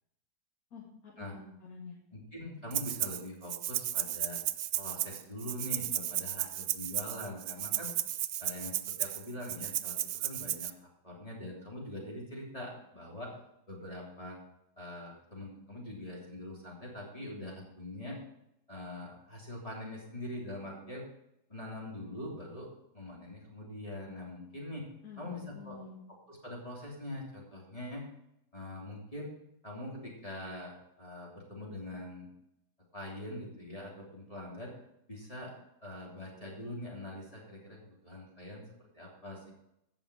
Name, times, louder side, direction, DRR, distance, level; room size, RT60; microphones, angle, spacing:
voice 1, 0.7-2.0 25.0-26.0, left 5 dB, 65° left, -3 dB, 2.6 m, -48 dB
voice 2, 2.1-4.4 4.8-7.9 8.4-10.7 11.0-13.3 13.7-14.4 14.8-18.2 18.7-21.1 21.5-22.7 22.9-24.8 25.2-25.8 26.3-28.0 28.5-29.3 29.6-32.3 32.9-34.7 35.1-35.5 35.8-38.6 38.9-39.5, left 1 dB, 20° left, -3 dB, 3.4 m, -43 dB
Rattle (instrument), 2.7-3.2 3.5-10.7, right 12 dB, 85° right, 1.2 m, -34 dB
16.5 x 5.9 x 4.9 m, 0.82 s
omnidirectional pair, 1.7 m